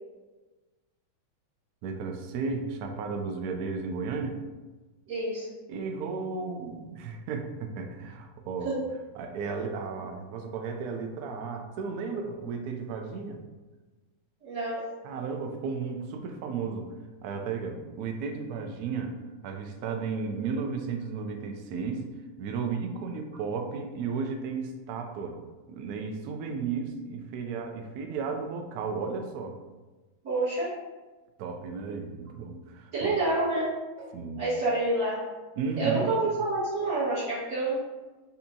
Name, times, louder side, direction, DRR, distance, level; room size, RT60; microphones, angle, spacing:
voice 1, 1.8-4.4 5.7-8.8 9.1-13.4 15.0-16.9 17.2-19.2 19.4-22.1 22.4-25.4 25.7-29.6 31.4-33.1 34.1-34.4 35.6-36.1, right 5 dB, 85° right, 4 dB, 0.8 m, -34 dB
voice 2, 5.1-5.5 8.6-8.8 14.4-15.0 30.2-30.8 32.9-34.1 34.4-35.3 35.8-37.8, right 2 dB, 55° right, -12 dB, 2.1 m, -28 dB
6.7 x 2.7 x 2.7 m, 1.2 s
omnidirectional pair, 2.2 m